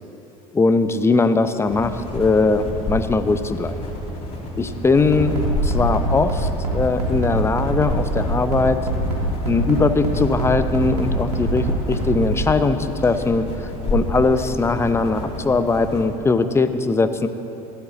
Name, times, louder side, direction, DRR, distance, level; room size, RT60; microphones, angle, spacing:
voice 1, 0.5-3.8 4.6-5.3 5.6-8.8 9.5-17.3, left 3 dB, 15° left, 10 dB, 0.7 m, -20 dB
sound 1, 1.7-16.1, left 1 dB, 30° left, 2.8 m, -30 dB
Bass drum, 5.1-12.5, right 1 dB, 85° right, 2.8 m, -24 dB
16.0 x 12.0 x 4.0 m, 3.0 s
figure-of-eight pair, 75°, 19 cm